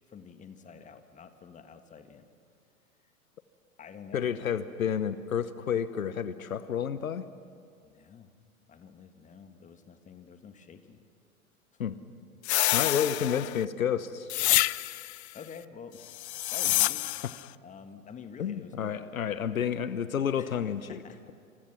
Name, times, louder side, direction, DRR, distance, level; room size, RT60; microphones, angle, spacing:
voice 1, 0.1-2.3 3.8-4.3 7.8-8.3 8.7-11.0 11.7-11.8 13.2-13.4 15.1-16.2 16.5-17.2 17.6-19.5 20.4-20.6 20.9-21.3, left 6 dB, 15° left, 8 dB, 1.7 m, -48 dB
voice 2, 4.1-7.2 11.8-11.9 12.7-14.3 18.4-21.0, left 8 dB, 75° left, 14 dB, 1.1 m, -30 dB
sound 1, 12.4-13.6 14.3-15.2 16.1-17.4, left 16 dB, 50° left, 0.6 m, -27 dB
28.0 x 27.5 x 6.1 m, 2.3 s
figure-of-eight pair, 95°, 42 cm